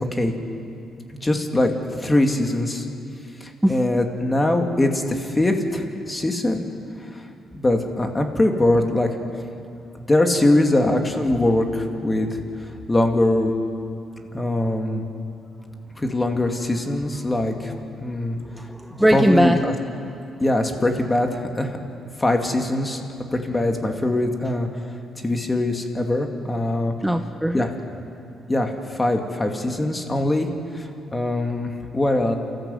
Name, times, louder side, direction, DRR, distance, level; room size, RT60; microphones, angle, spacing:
voice 1, 1.2-2.9 3.4-6.6 7.1-7.2 7.5-9.1 9.9-12.4 12.9-13.5 14.3-15.0 16.0-17.7 18.0-18.4 19.1-19.7 20.4-21.8 22.2-24.7 25.2-26.9 27.5-27.7 28.5-32.4, left 1 dB, 20° left, 4 dB, 2.4 m, -22 dB
voice 2, 3.6-4.0 18.5-19.6 27.0-27.6, equal, 5° right, 6 dB, 0.8 m, -20 dB
29.0 x 14.0 x 8.0 m, 2.6 s
cardioid pair, 90°, 0 cm